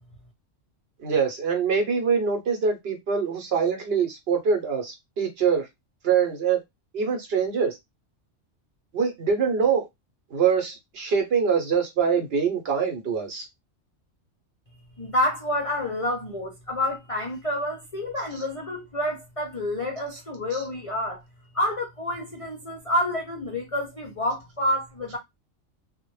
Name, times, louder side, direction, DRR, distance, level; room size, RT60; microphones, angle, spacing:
voice 1, 1.0-5.7 6.0-6.6 6.9-7.8 8.9-9.9 10.3-13.5 20.5-20.6, right 6 dB, 60° right, 0.8 m, -24 dB
voice 2, 15.0-21.2 21.5-25.2, left 1 dB, 45° left, 0.4 m, -28 dB
2.1 x 2.0 x 3.0 m
omnidirectional pair, 1.3 m